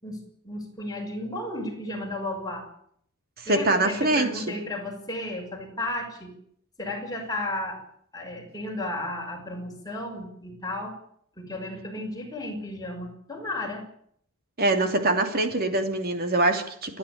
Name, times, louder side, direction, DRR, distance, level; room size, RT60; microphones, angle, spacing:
voice 1, 0.0-2.7 3.4-6.3 6.8-7.8 8.1-10.9 11.4-13.8, left 1 dB, 15° left, 1 dB, 6.2 m, -33 dB
voice 2, 3.4-4.6 14.6-17.0, right 2 dB, 45° right, 6 dB, 3.0 m, -24 dB
29.0 x 11.5 x 8.7 m, 0.66 s
head